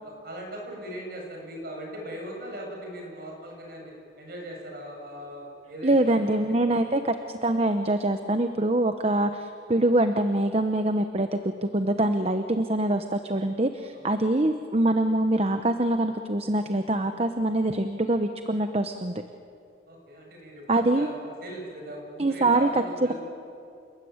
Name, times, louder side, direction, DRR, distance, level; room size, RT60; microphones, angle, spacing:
voice 1, 0.0-3.9 4.2-6.4 13.9-14.1 19.9-23.1, equal, 55° right, 0 dB, 7.8 m, -39 dB
voice 2, 5.8-7.1 7.4-19.2 20.7-21.1 22.2-22.8, right 1 dB, 35° right, 8 dB, 0.9 m, -24 dB
28.5 x 20.5 x 9.5 m, 2.5 s
head